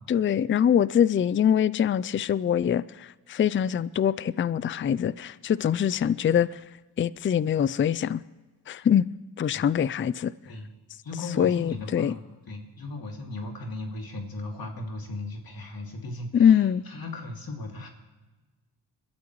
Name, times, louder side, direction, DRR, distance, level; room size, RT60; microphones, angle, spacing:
voice 1, 0.1-6.6 7.0-8.2 8.7-9.1 9.4-10.3 11.4-12.1 16.3-16.8, left 9 dB, 30° left, 0.4 m, -23 dB
voice 2, 11.0-17.9, left 2 dB, 55° left, 2.5 m, -37 dB
22.0 x 13.0 x 3.1 m
cardioid pair, 65°, 43 cm